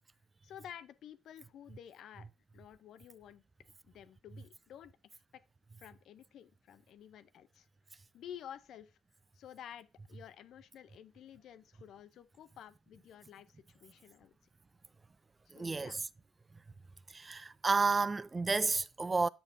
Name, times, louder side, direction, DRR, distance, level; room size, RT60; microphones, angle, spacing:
voice 1, 0.4-2.3 2.5-3.4 3.8-5.2 5.8-9.0 9.3-14.4 15.5-16.0, left 10 dB, 60° left, 0.6 m, -52 dB
voice 2, 15.5-16.0 17.1-19.3, right 4 dB, 25° right, 0.4 m, -31 dB
8.0 x 6.9 x 2.6 m
hypercardioid pair, 50°, 0 cm